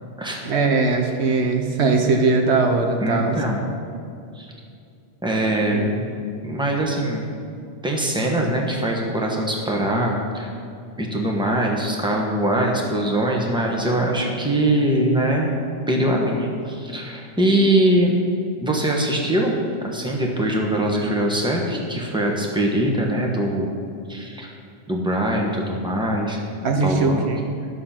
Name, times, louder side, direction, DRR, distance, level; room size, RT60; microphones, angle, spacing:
voice 1, 0.4-3.4 5.7-6.0 26.6-27.5, right 3 dB, 80° right, 4 dB, 1.2 m, -20 dB
voice 2, 3.0-3.6 4.3-4.5 5.2-5.9 6.4-7.3 7.8-10.5 11.0-15.6 15.9-18.1 18.6-23.8 24.1-24.5 24.9-26.4 26.8-27.3, right 1 dB, 5° right, -1 dB, 1.3 m, -22 dB
11.5 x 6.7 x 5.8 m, 2.4 s
omnidirectional pair, 1.1 m